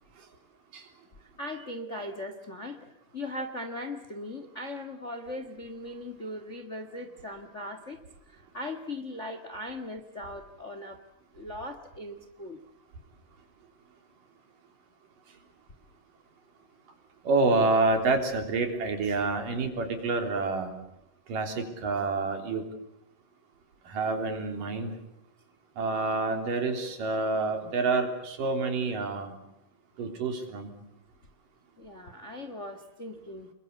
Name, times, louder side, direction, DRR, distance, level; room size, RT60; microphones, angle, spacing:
voice 1, 1.2-8.0 8.3-11.0 11.3-12.6 31.8-33.5, left 1 dB, 40° left, 8 dB, 1.1 m, -39 dB
voice 2, 17.2-20.7 21.3-22.6 23.9-24.9 25.8-29.3 30.0-30.7, right 3 dB, 80° right, 5 dB, 5.1 m, -28 dB
28.0 x 22.5 x 8.4 m, 0.84 s
omnidirectional pair, 3.8 m